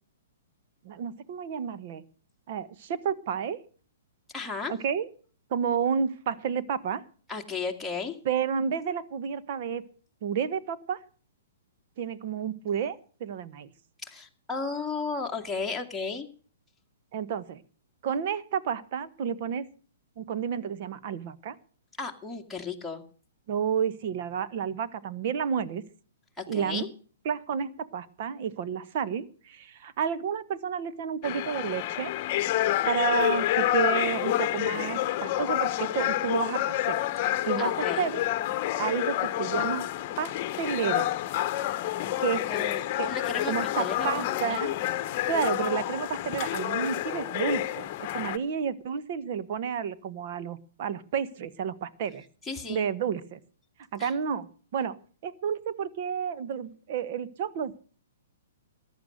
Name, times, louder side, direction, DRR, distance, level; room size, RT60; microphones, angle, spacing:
voice 1, 0.8-2.0 2.5-3.6 4.7-5.1 5.5-7.0 8.2-9.8 10.2-11.0 12.0-13.7 17.1-17.6 18.0-19.7 20.2-21.6 23.5-25.8 26.5-26.8 27.2-32.1 32.8-37.0 37.5-38.2 38.8-39.8 40.2-41.1 42.2-42.5 43.0-43.1 43.5-44.7 45.3-47.9 48.1-52.3 52.7-53.4 53.9-54.5 54.7-55.0 55.2-57.8, right 7 dB, 50° right, 13 dB, 1.2 m, -31 dB
voice 2, 4.3-4.7 7.3-8.2 14.0-16.3 22.0-23.0 26.4-26.9 37.6-38.0 42.5-44.7 52.5-52.8 54.0-54.1, left 4 dB, 5° left, -1 dB, 2.0 m, -34 dB
sound 1, 31.2-48.4, left 14 dB, 40° left, 1.0 m, -28 dB
14.5 x 10.0 x 6.5 m, 0.43 s
hypercardioid pair, 140°, 0 cm